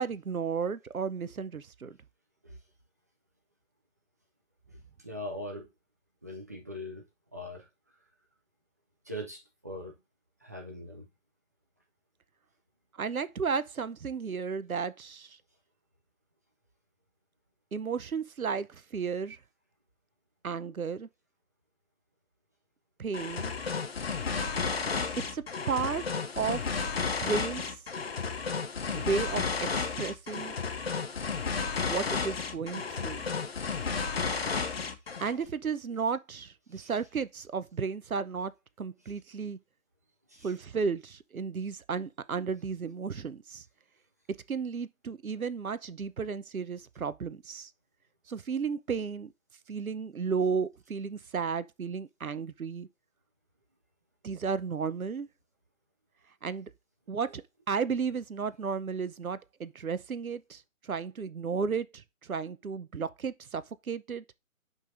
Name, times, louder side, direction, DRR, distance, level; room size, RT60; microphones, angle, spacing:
voice 1, 0.0-2.0 13.0-15.4 17.7-19.4 20.4-21.1 23.0-23.5 25.3-26.0 26.4-26.7 27.0-27.6 28.9-30.6 31.9-33.2 35.2-38.5 38.8-39.6 40.4-43.6 44.5-47.7 48.3-49.3 49.7-52.9 54.2-55.3 56.4-56.7 57.1-57.4 57.7-62.0 62.3-64.2, right 5 dB, 85° right, 0.8 m, -33 dB
voice 2, 4.7-5.7 6.2-7.7 9.0-9.9 10.4-11.1 28.0-28.1 34.7-34.9 36.7-36.9 40.3-40.5 57.1-57.4, left 1 dB, 10° right, 0.6 m, -42 dB
sound 1, 23.1-35.4, left 5 dB, 45° left, 1.0 m, -32 dB
9.9 x 5.4 x 2.6 m
figure-of-eight pair, 145°, 41 cm